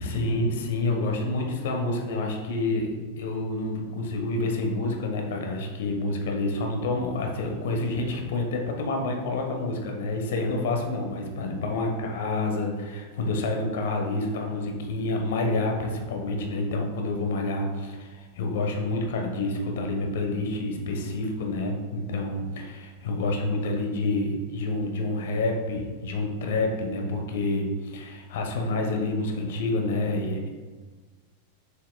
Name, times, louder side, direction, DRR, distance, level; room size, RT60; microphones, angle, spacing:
voice 1, 0.0-30.5, left 2 dB, 55° left, 2 dB, 1.1 m, -28 dB
7.1 x 6.6 x 2.3 m, 1.4 s
figure-of-eight pair, 90°, 0 cm